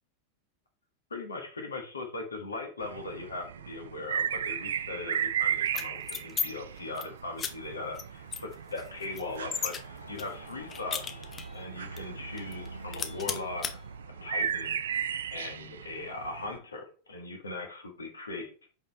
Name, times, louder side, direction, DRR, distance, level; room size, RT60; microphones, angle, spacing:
voice 1, 1.1-11.3 11.5-13.8 14.2-15.0 15.3-18.7, left 3 dB, 75° left, 3 dB, 1.5 m, -39 dB
sound 1, 2.8-16.6, right 9 dB, 65° right, 0.4 m, -36 dB
sound 2, 5.7-6.5 6.8-7.0 7.4-7.5 7.9-8.0 8.3-9.8 10.2-11.6 12.0-12.1 12.4-12.7 12.9-13.7, left 6 dB, 20° left, 0.8 m, -34 dB
Truck, 7.1-15.7, right 2 dB, 90° right, 0.9 m, -48 dB
5.4 x 4.6 x 4.2 m, 0.39 s
figure-of-eight pair, 90°, 0 cm